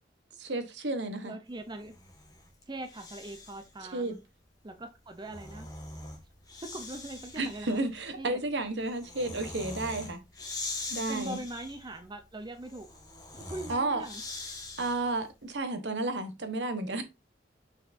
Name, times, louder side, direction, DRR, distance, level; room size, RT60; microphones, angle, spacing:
voice 1, 0.4-1.3 3.9-4.2 7.4-10.2 10.9-11.4 13.7-14.0 14.8-17.0, right 2 dB, 70° right, 1.1 m, -32 dB
voice 2, 1.2-1.9 2.7-4.2 4.6-5.7 6.6-7.7 8.2-8.4 11.1-12.9 13.5-14.2, right 1 dB, 25° right, 0.7 m, -41 dB
Breathing, 1.8-3.7 5.0-15.2, left 2 dB, 20° left, 1.5 m, -43 dB
6.4 x 5.6 x 2.6 m
head